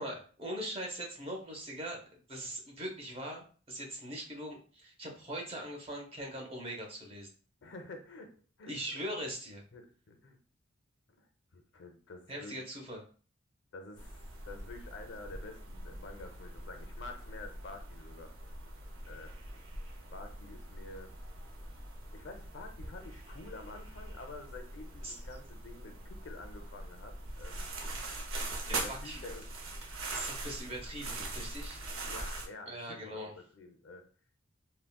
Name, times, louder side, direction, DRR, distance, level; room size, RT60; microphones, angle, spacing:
voice 1, 0.0-7.3 8.7-9.6 12.3-13.0 25.0-25.2 28.7-29.2 30.1-31.8 32.7-33.3, right 1 dB, 25° right, 0 dB, 0.6 m, -41 dB
voice 2, 7.6-8.3 8.6-8.7 9.7-10.4 11.2-11.3 11.5-12.6 13.7-18.3 19.1-19.3 20.1-21.1 22.1-27.7 28.7-29.5 32.0-34.0, left 2 dB, 55° left, 5 dB, 0.5 m, -49 dB
sound 1, 14.0-32.5, right 2 dB, 80° right, 0.6 m, -42 dB
3.5 x 2.1 x 2.2 m, 0.41 s
head